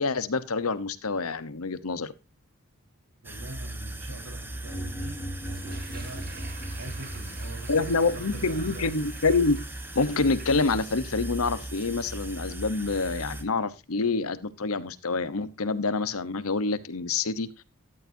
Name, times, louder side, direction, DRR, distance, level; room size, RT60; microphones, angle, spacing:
voice 1, 0.0-2.1 7.7-9.6 9.9-17.5, left 3 dB, 80° left, 15 dB, 1.0 m, -27 dB
sound 1, 3.2-13.4, right 1 dB, 10° right, 1.2 m, -38 dB
voice 2, 3.2-8.9, right 2 dB, 80° right, 4 dB, 4.1 m, -44 dB
sound 2, 4.6-7.9, equal, 15° left, 1.5 m, -39 dB
Toilet flush, 5.4-12.5 12.7-12.8, right 4 dB, 45° right, 2.2 m, -49 dB
13.5 x 11.0 x 2.7 m, 0.25 s
head